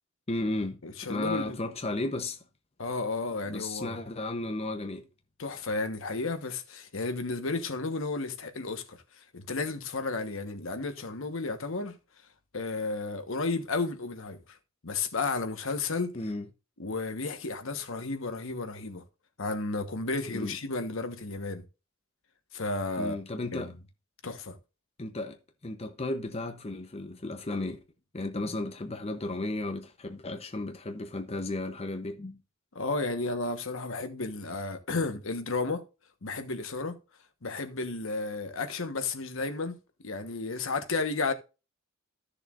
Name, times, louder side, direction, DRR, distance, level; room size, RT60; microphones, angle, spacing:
voice 1, 0.3-0.8 1.1-2.4 3.5-5.0 16.1-16.5 20.3-20.6 23.0-23.7 25.0-25.4 25.6-27.8 28.1-32.4, left 2 dB, 30° left, 0.8 m, -34 dB
voice 2, 0.8-1.6 2.8-4.0 5.4-9.0 9.3-11.9 12.5-14.4 14.8-16.1 16.8-19.0 19.4-21.6 22.5-23.2 23.5-23.7 24.2-24.6 32.7-35.8 36.2-37.0 37.4-39.8 40.0-41.3, left 3 dB, 65° left, 1.3 m, -32 dB
14.5 x 6.7 x 2.5 m
head